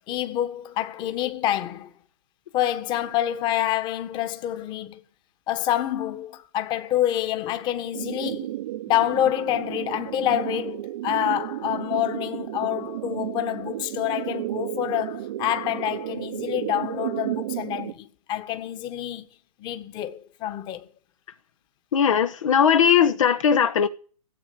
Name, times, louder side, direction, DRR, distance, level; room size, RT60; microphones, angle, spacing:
voice 1, 0.1-1.9 2.5-5.0 5.5-8.6 8.9-19.3 19.6-20.9, left 12 dB, 25° left, 1.5 m, -27 dB
sound 1, 7.9-17.9, right 15 dB, 45° right, 0.9 m, -32 dB
voice 2, 21.9-23.9, left 8 dB, 60° left, 1.2 m, -19 dB
16.5 x 8.4 x 8.7 m
hypercardioid pair, 135°, 19 cm